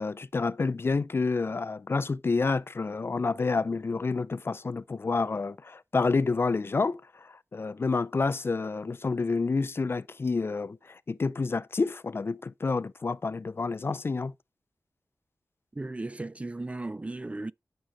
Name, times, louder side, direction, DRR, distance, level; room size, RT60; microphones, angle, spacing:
voice 1, 0.0-14.3, left 4 dB, 40° left, 0.4 m, -29 dB
voice 2, 15.7-17.5, right 2 dB, 20° right, 0.4 m, -36 dB
10.0 x 6.3 x 4.0 m
wide cardioid pair, 90°, 6 cm